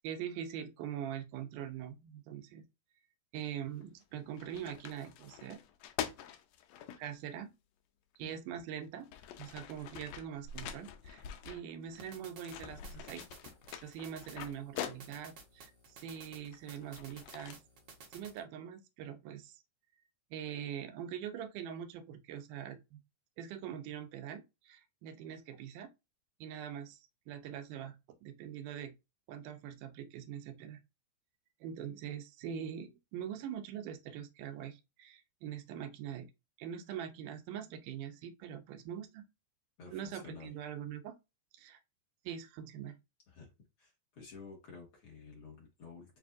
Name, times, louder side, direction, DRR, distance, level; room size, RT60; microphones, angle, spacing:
voice 1, 0.0-2.7 3.3-5.6 7.0-7.5 8.2-9.1 9.4-13.2 13.8-17.6 18.1-19.6 20.3-23.0 23.4-25.9 26.4-28.0 28.2-28.9 29.3-30.8 31.6-36.3 36.6-39.3 39.9-41.2 41.5-41.8 42.3-43.0, right 9 dB, 85° right, 2.3 m, -43 dB
sound 1, 3.8-4.0 4.4-7.0 8.1-8.2 8.8-12.1 12.4-15.4 16.1-17.5, left 9 dB, 80° left, 1.6 m, -45 dB
sound 2, 12.0-18.4, right 4 dB, 70° right, 1.0 m, -55 dB
voice 2, 39.8-40.5 43.3-43.5 43.8-46.2, left 5 dB, 50° left, 1.9 m, -51 dB
6.9 x 2.6 x 2.5 m
omnidirectional pair, 3.7 m